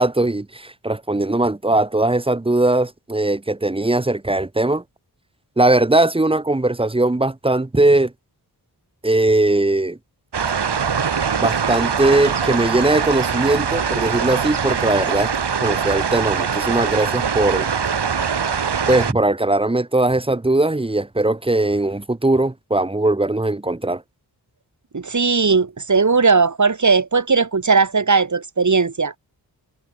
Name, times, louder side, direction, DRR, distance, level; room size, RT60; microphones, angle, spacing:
voice 1, 0.0-4.8 5.6-8.1 9.0-10.0 11.4-15.3 15.6-17.7 18.9-24.0, right 2 dB, 15° right, 1.0 m, -19 dB
sound 1, 10.3-19.1, right 6 dB, 80° right, 3.7 m, -22 dB
voice 2, 24.9-29.2, right 4 dB, 45° right, 3.0 m, -17 dB
wide cardioid pair, 105°, 40 cm